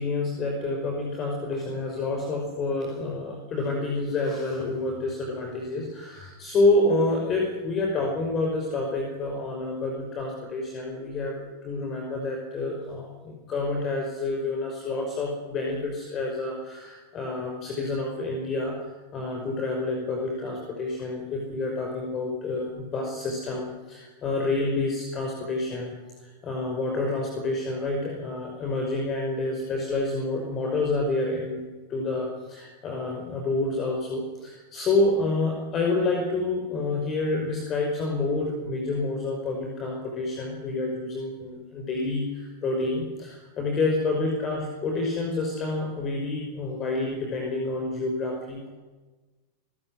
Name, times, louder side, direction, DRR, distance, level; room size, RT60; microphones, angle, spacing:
voice 1, 0.0-48.7, left 2 dB, 30° left, 2 dB, 5.4 m, -28 dB
27.5 x 15.0 x 9.6 m, 1.2 s
figure-of-eight pair, 90°, 0 cm